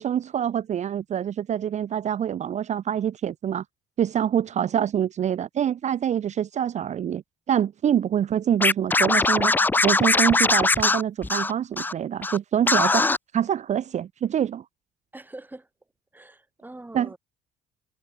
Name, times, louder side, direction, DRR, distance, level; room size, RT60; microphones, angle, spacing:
voice 1, 0.0-3.6 4.0-9.6 9.8-13.1 13.3-14.6 16.9-17.1, right 9 dB, 45° right, 0.7 m, -25 dB
Scratching (performance technique), 8.6-11.9 12.2-12.4 12.7-13.2, left 3 dB, 10° left, 0.5 m, -21 dB
voice 2, 15.1-15.7 16.1-17.2, right 2 dB, 10° right, 7.9 m, -43 dB
cardioid pair, 110°, 17 cm